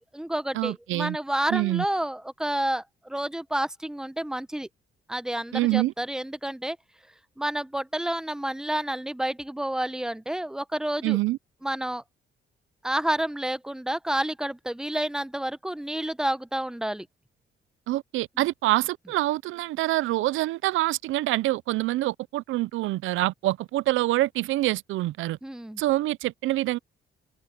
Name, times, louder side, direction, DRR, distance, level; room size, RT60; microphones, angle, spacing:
voice 1, 0.0-4.7 5.1-6.8 7.4-11.2 11.6-12.0 12.8-17.1 18.4-18.5 25.4-25.8, right 1 dB, 5° right, 0.9 m, -29 dB
voice 2, 0.5-1.2 1.5-1.8 5.5-5.9 11.0-11.4 17.9-25.4 25.8-26.8, right 17 dB, 80° right, 0.5 m, -26 dB
open air
cardioid pair, 90°, 20 cm